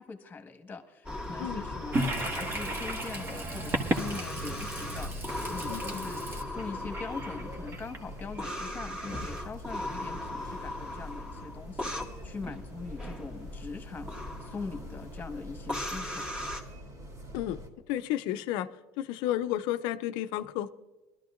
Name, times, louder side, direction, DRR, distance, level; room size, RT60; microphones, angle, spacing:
voice 1, 0.0-16.3, left 4 dB, 20° left, 7 dB, 1.5 m, -42 dB
sound 1, 1.0-16.6, left 1 dB, 10° right, 2.0 m, -39 dB
sound 2, 1.7-17.7, right 1 dB, 45° right, 3.3 m, -47 dB
Toilet flush, 1.9-8.5, right 1 dB, 30° right, 1.6 m, -34 dB
voice 2, 5.7-6.1 17.3-17.6 17.9-18.7 19.0-20.7, left 12 dB, 65° left, 12 dB, 0.5 m, -32 dB
21.5 x 12.5 x 2.5 m, 1.2 s
supercardioid pair, 95°, 8 cm